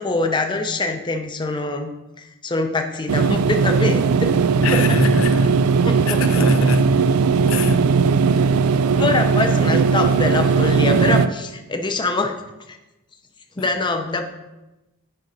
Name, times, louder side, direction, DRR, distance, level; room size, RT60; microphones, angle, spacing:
voice 1, 0.0-1.9 2.2-4.3 4.7-5.0 5.8-6.2 9.0-12.4 12.7-12.8 13.6-14.3, left 3 dB, 20° left, 0.6 m, -24 dB
sound 1, 3.1-11.3, right 5 dB, 80° right, 0.4 m, -18 dB
voice 2, 4.6-5.6 6.1-7.0 7.5-7.9 9.4-9.5 13.6-13.7, left 3 dB, 65° left, 0.7 m, -24 dB
8.9 x 5.2 x 5.4 m
head